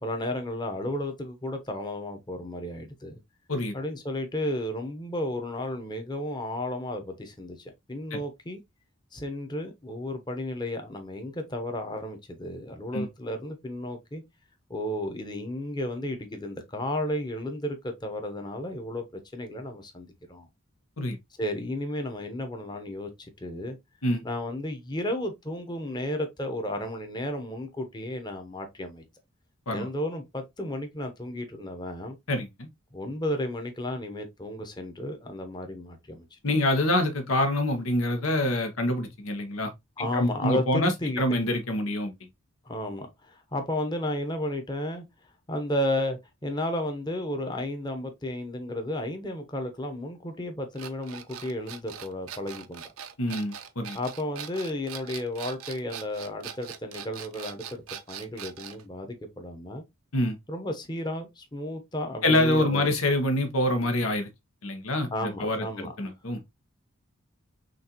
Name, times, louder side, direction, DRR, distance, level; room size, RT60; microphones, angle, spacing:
voice 1, 0.0-3.1 3.7-8.6 9.1-14.2 14.7-19.1 19.3-20.5 21.4-23.8 24.2-29.0 29.7-32.2 32.9-36.4 40.0-41.4 42.6-45.0 45.5-52.8 53.9-57.8 58.1-59.8 60.5-62.9 65.1-65.9, left 1 dB, 20° left, 0.9 m, -33 dB
voice 2, 32.3-32.7 36.4-39.7 40.0-40.9 41.2-42.1 53.2-54.0 60.1-60.4 62.2-64.3 64.6-66.4, left 1 dB, 85° left, 1.1 m, -26 dB
sound 1, 50.8-58.8, right 9 dB, 90° right, 0.6 m, -41 dB
6.3 x 2.6 x 2.9 m
head